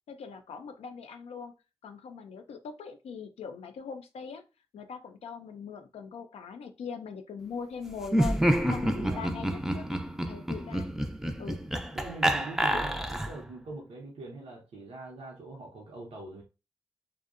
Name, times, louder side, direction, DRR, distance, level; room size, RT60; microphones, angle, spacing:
voice 1, 0.1-1.5 1.8-4.4 4.7-9.9 10.3-10.9 11.4-11.7 12.7-12.8, left 6 dB, 90° left, 0.4 m, -41 dB
Laughter, 8.0-13.5, equal, 5° right, 0.3 m, -28 dB
voice 2, 8.9-9.3 11.9-16.4, right 3 dB, 85° right, 0.6 m, -42 dB
2.6 x 2.1 x 2.4 m
cardioid pair, 55°, 10 cm